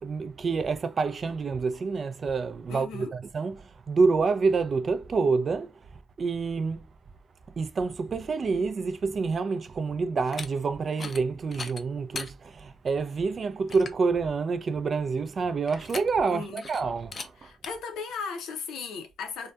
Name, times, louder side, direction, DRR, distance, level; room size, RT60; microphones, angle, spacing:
voice 1, 0.0-5.7 6.2-6.9 7.6-17.5, right 4 dB, 45° right, 0.3 m, -27 dB
voice 2, 2.7-3.1 16.3-16.6 17.4-19.5, left 5 dB, 85° left, 0.6 m, -36 dB
sound 1, 10.2-10.5 10.9-11.2 11.5-12.3 12.9-13.0 13.4-13.5 13.7-14.0 15.7-16.3 16.6-16.8 17.1-17.3 17.6-17.7, left 4 dB, 40° left, 0.4 m, -38 dB
2.6 x 2.2 x 2.2 m
cardioid pair, 90°, 0 cm